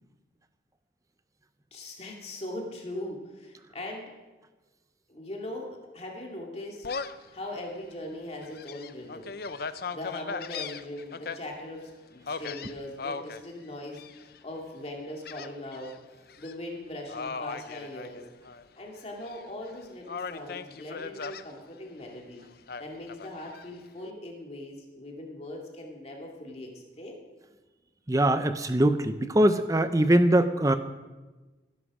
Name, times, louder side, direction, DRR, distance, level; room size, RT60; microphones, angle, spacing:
voice 1, 1.7-4.1 5.1-6.9 7.3-9.3 9.9-16.0 16.4-18.3 18.8-22.4 22.8-27.2, left 1 dB, 35° left, 0 dB, 2.4 m, -40 dB
Gull seagull, 6.8-7.3 7.8-7.9 8.4-11.4 12.3-13.4 13.9-14.4 15.2-15.9 16.3-16.5 17.1-18.6 19.0-19.7 20.1-21.4 22.7-23.7, left 5 dB, 55° left, 0.6 m, -38 dB
voice 2, 28.1-30.8, right 1 dB, 20° right, 10 dB, 0.7 m, -22 dB
16.5 x 11.0 x 4.9 m, 1.2 s
head